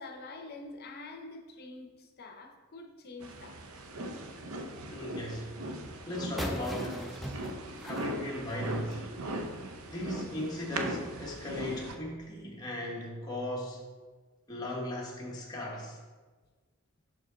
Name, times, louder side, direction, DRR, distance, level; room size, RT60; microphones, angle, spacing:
voice 1, 0.0-3.6, left 2 dB, 50° left, 3 dB, 0.7 m, -46 dB
sound 1, 3.2-12.0, right 1 dB, 75° right, 0.6 m, -39 dB
voice 2, 4.9-5.5 6.1-7.0 7.8-9.0 9.9-13.8 14.5-16.0, left 1 dB, 20° left, -3 dB, 1.0 m, -37 dB
sound 2, 6.4-9.1, equal, ahead, 0.5 m, -39 dB
6.0 x 4.8 x 3.8 m, 1.4 s
head